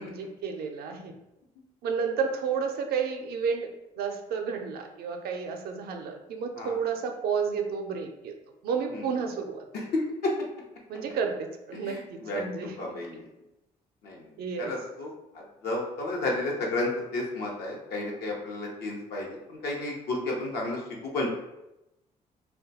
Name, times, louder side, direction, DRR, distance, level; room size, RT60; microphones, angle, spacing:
voice 1, 0.0-1.1 1.8-3.7 4.0-8.3 8.6-9.6 10.9-12.9 14.4-14.7, right 6 dB, 75° right, 4 dB, 0.5 m, -31 dB
voice 2, 9.7-10.3 11.8-12.4 12.8-13.3 14.0-14.2 14.6-15.1 15.3-21.3, left 2 dB, 80° left, -1 dB, 0.8 m, -32 dB
2.3 x 2.3 x 3.9 m, 0.92 s
supercardioid pair, 65°, 16 cm